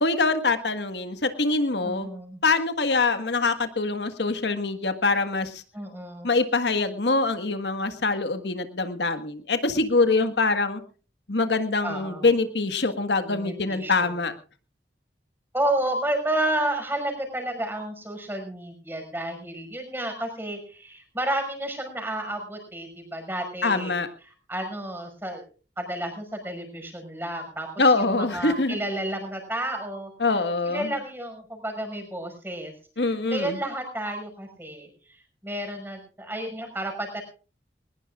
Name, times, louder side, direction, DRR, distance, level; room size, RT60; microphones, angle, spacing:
voice 1, 0.0-2.1 2.4-5.6 6.2-10.8 11.3-14.3 23.6-24.1 27.8-28.8 30.2-30.9 33.0-33.6, left 3 dB, 80° left, 10 dB, 1.6 m, -24 dB
voice 2, 1.8-2.4 5.7-6.3 11.8-12.3 13.3-14.1 15.5-24.0 24.5-25.4 25.8-30.1 30.6-32.7 33.3-37.2, right 1 dB, 10° right, 4 dB, 5.7 m, -31 dB
21.0 x 20.5 x 2.4 m, 0.38 s
head